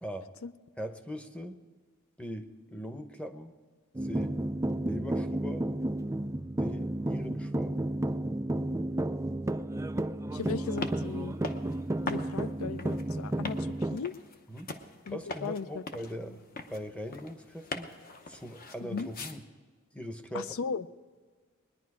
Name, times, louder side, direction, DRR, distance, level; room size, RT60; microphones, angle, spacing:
voice 1, 0.0-0.3 0.8-1.6 2.2-3.5 4.0-4.4 4.8-5.7 6.6-7.8 14.5-14.7 15.1-17.9 18.3-19.4 19.9-20.5, equal, 5° left, 8 dB, 0.8 m, -41 dB
sound 1, 3.9-14.0, right 1 dB, 15° right, 0.4 m, -32 dB
voice 2, 10.3-11.4 12.1-14.1 15.1-15.8 16.3-16.4 18.8-19.1 20.3-20.9, left 5 dB, 80° left, 15 dB, 0.5 m, -37 dB
sound 2, 10.4-19.4, left 2 dB, 45° left, 0.9 m, -42 dB
21.0 x 10.5 x 4.8 m, 1.5 s
head